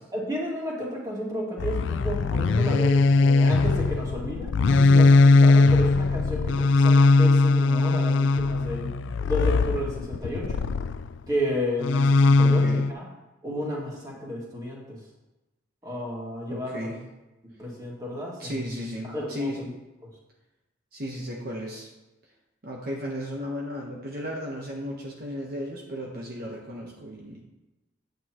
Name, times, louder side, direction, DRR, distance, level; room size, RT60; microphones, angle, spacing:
voice 1, 0.1-8.9 9.3-10.7 11.3-13.1 13.4-15.0 15.8-16.9 17.6-18.8 19.1-19.7, equal, 20° right, -4 dB, 2.3 m, -32 dB
sound 1, 1.6-11.1 11.8-12.9, left 3 dB, 90° left, 0.4 m, -20 dB
voice 2, 12.4-12.9 16.5-17.0 18.4-19.6 20.9-21.9 22.6-27.4, equal, 55° right, -2 dB, 1.2 m, -35 dB
9.1 x 8.8 x 3.0 m, 1.0 s
head